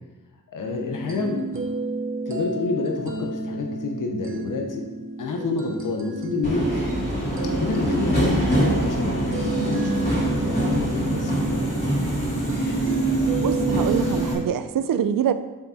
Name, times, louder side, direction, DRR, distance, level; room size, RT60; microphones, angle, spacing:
voice 1, 0.5-1.5 2.3-4.8 5.2-6.7 7.6-11.6, left 3 dB, 65° left, 2 dB, 1.1 m, -28 dB
sound 1, 0.7-14.6, right 2 dB, 40° right, 0.8 m, -32 dB
Subway metro underground, 6.4-14.3, right 1 dB, 30° left, 2.6 m, -24 dB
voice 2, 13.4-15.3, right 8 dB, 80° right, 12 dB, 0.6 m, -24 dB
7.6 x 6.0 x 4.3 m, 1.1 s
wide cardioid pair, 170°, 33 cm